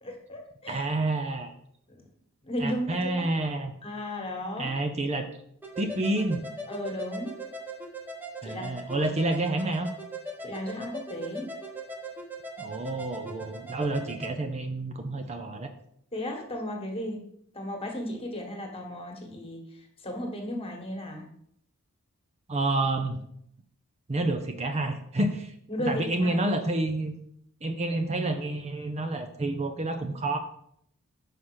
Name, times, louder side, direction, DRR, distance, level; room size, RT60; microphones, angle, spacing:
voice 1, 0.0-0.9 1.9-2.0 2.4-3.3 3.8-4.7 6.7-7.4 8.4-8.7 10.4-11.6 16.1-17.2 17.5-21.3 25.7-26.4, left 1 dB, 25° left, 2 dB, 1.5 m, -35 dB
voice 2, 0.7-1.5 2.6-3.7 4.6-5.2 5.8-6.4 8.4-9.9 12.6-15.7 22.5-23.2 24.1-25.5 25.9-27.2 27.6-30.4, right 2 dB, 30° right, 6 dB, 0.6 m, -29 dB
sound 1, 5.6-14.3, right 1 dB, 10° right, 1.1 m, -40 dB
5.7 x 5.0 x 6.3 m, 0.70 s
head